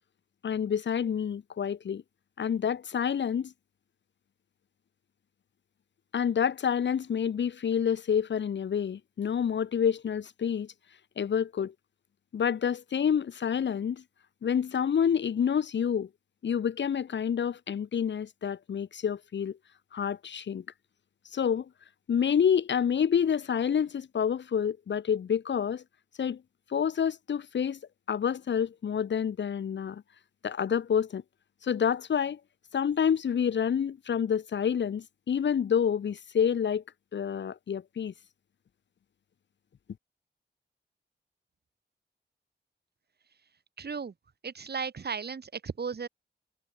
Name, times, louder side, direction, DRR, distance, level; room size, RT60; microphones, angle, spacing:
voice 1, 0.4-2.0 2.4-3.5 6.1-10.7 11.2-11.7 12.3-14.0 14.4-16.1 16.4-19.6 19.9-20.6 21.3-21.7 22.1-25.8 26.2-26.4 26.7-27.8 28.1-30.0 30.4-31.2 31.6-32.4 32.7-36.8 37.1-38.1, left 8 dB, 75° left, 0.7 m, -28 dB
voice 2, 43.8-44.1 44.4-46.1, right 5 dB, 60° right, 1.5 m, -35 dB
wide cardioid pair, 75°, 19 cm